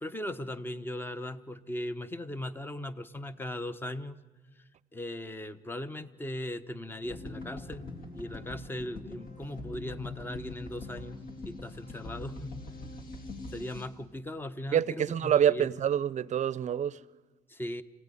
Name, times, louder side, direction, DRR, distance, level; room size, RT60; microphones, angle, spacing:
voice 1, 0.0-4.2 4.9-7.9 8.1-12.6 13.5-15.7 17.5-17.8, left 1 dB, 10° left, 1.0 m, -38 dB
sound 1, 7.0-13.9, left 2 dB, 60° left, 3.9 m, -43 dB
voice 2, 14.7-17.0, right 9 dB, 45° right, 0.7 m, -26 dB
27.0 x 17.0 x 9.9 m
cardioid pair, 110°, 17 cm